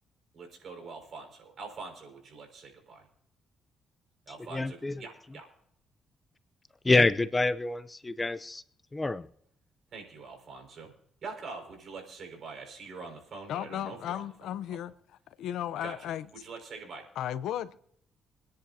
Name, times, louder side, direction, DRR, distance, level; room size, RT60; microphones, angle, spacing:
voice 1, 0.3-3.1 4.3-5.5 9.9-10.9 11.2-14.2 14.7-14.8 15.8-16.1 16.4-17.1, right 4 dB, 55° right, 5.4 m, -44 dB
voice 2, 4.5-4.9 6.8-8.6 8.9-9.3, left 2 dB, 20° left, 0.6 m, -26 dB
voice 3, 13.5-14.9 15.4-16.3 17.2-17.8, left 11 dB, 80° left, 0.7 m, -34 dB
25.5 x 10.5 x 2.8 m
cardioid pair, 90°, 0 cm